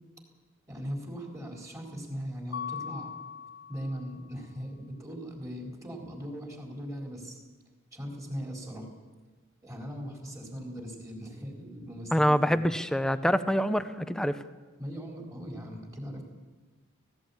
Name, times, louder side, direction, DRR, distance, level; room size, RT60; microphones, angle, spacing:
voice 1, 0.7-3.1 3.7-7.4 7.9-8.9 9.6-12.6 14.8-16.2, equal, 15° right, 0 dB, 4.3 m, -39 dB
Mallet percussion, 2.5-4.3, left 7 dB, 45° left, 0.7 m, -40 dB
voice 2, 12.1-14.4, equal, 5° left, 11 dB, 0.8 m, -25 dB
18.0 x 17.0 x 8.6 m, 1.3 s
head